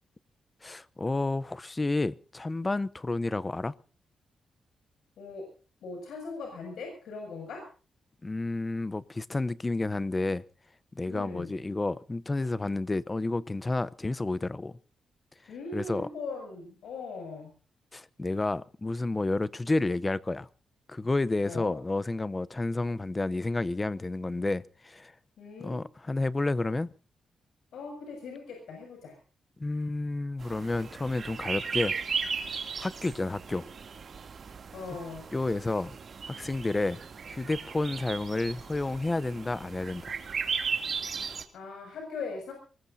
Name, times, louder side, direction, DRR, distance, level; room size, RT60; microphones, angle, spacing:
voice 1, 0.6-3.7 8.2-10.4 10.9-14.8 15.7-16.1 17.9-20.5 20.9-25.1 25.6-26.9 29.6-32.0 32.8-33.6 35.3-35.9 36.3-37.0 37.3-40.1, left 2 dB, 20° left, 0.7 m, -30 dB
voice 2, 5.2-5.5 5.8-7.7 11.1-11.5 15.5-17.5 21.4-21.8 25.4-25.8 27.7-29.2 34.7-35.3 41.5-42.5, left 4 dB, 85° left, 6.9 m, -40 dB
sound 1, 30.4-41.5, right 5 dB, 45° right, 2.7 m, -36 dB
24.5 x 20.5 x 2.7 m
wide cardioid pair, 140°, 0 cm